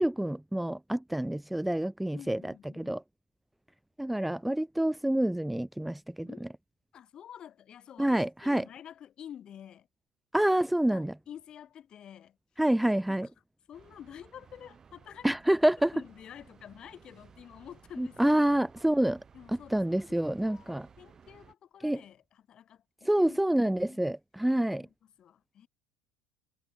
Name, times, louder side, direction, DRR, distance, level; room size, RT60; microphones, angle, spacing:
voice 1, 0.0-3.0 4.0-6.5 8.0-8.6 10.3-11.1 12.6-13.3 15.2-15.9 18.0-19.2 19.5-20.9 21.8-22.0 23.0-24.9, right 1 dB, 5° right, 0.6 m, -27 dB
voice 2, 2.1-3.0 6.2-6.6 6.9-9.9 10.9-12.4 13.1-13.3 13.7-15.3 15.9-18.4 19.3-19.8 20.1-24.0 24.8-25.7, left 9 dB, 40° left, 5.5 m, -49 dB
sound 1, 13.7-21.5, right 6 dB, 25° right, 7.4 m, -57 dB
supercardioid pair, 125°, 2 cm